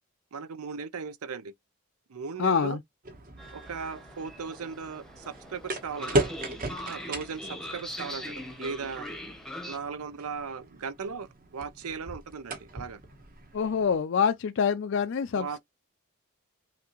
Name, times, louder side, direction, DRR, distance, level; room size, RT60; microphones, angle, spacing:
voice 1, 0.3-1.5 2.1-2.8 3.5-6.3 6.9-9.1 9.7-13.0 15.3-15.6, right 5 dB, 85° right, 0.6 m, -37 dB
voice 2, 2.4-2.8 13.5-15.6, left 6 dB, 55° left, 0.4 m, -26 dB
sound 1, 3.0-14.0, right 1 dB, 40° right, 1.1 m, -37 dB
Train, 3.4-9.8, left 1 dB, ahead, 0.8 m, -42 dB
5.8 x 2.7 x 3.0 m
head